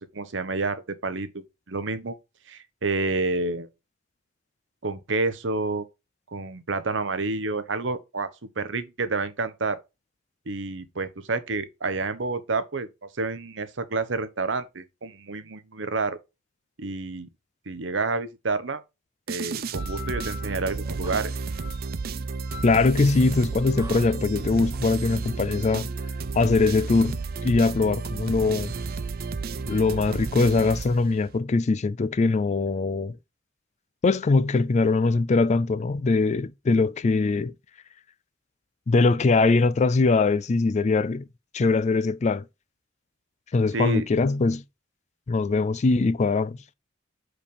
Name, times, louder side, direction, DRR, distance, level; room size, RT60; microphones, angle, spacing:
voice 1, 0.1-2.2 2.5-3.7 4.8-5.8 6.3-8.3 8.6-9.8 10.5-12.9 13.1-16.2 16.8-17.3 17.7-18.8 19.3-21.3 43.7-44.1, right 3 dB, 70° right, 0.9 m, -29 dB
sound 1, 19.3-31.4, right 4 dB, 55° right, 0.5 m, -32 dB
sound 2, 19.5-28.7, left 4 dB, 15° right, 0.8 m, -46 dB
voice 2, 22.6-25.9 26.3-28.7 29.7-33.2 34.0-37.5 38.9-41.2 41.5-42.4 43.5-44.6 45.3-46.6, left 3 dB, 35° left, 0.4 m, -22 dB
5.3 x 5.0 x 4.8 m
head